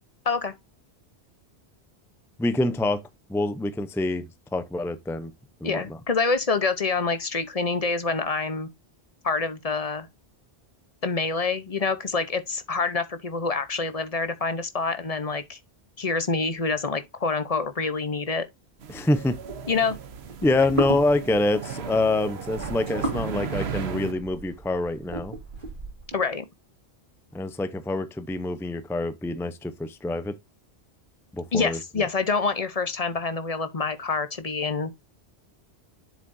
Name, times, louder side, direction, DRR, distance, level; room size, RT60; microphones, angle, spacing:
voice 1, 2.4-3.0 3.3-5.3 5.6-5.8 18.9-19.4 20.4-25.3 27.3-30.4 31.3-32.1, left 2 dB, 5° left, 0.6 m, -26 dB
voice 2, 5.6-8.7 9.2-10.1 11.0-15.6 16.0-18.4 19.7-20.0 26.1-26.4 31.5-34.9, left 4 dB, 35° left, 0.8 m, -26 dB
sound 1, 18.8-24.1, right 7 dB, 70° right, 1.1 m, -35 dB
sound 2, 19.1-26.2, right 2 dB, 50° right, 3.2 m, -35 dB
7.3 x 7.3 x 2.6 m
omnidirectional pair, 1.1 m